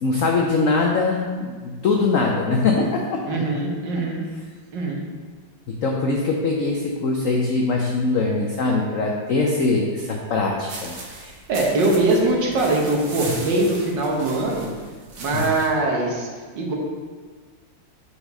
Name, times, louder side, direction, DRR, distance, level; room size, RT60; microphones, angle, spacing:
voice 1, 0.0-3.4 5.7-11.3 15.3-15.5, left 3 dB, 75° left, 0 dB, 0.7 m, -22 dB
voice 2, 3.3-4.2 4.7-5.0 11.1-11.2 11.5-14.7 15.2-16.3 16.5-16.8, right 2 dB, 70° right, -1 dB, 1.7 m, -22 dB
sound 1, 10.7-15.8, right 3 dB, 50° right, 1.0 m, -38 dB
5.1 x 4.9 x 5.3 m, 1.5 s
omnidirectional pair, 2.1 m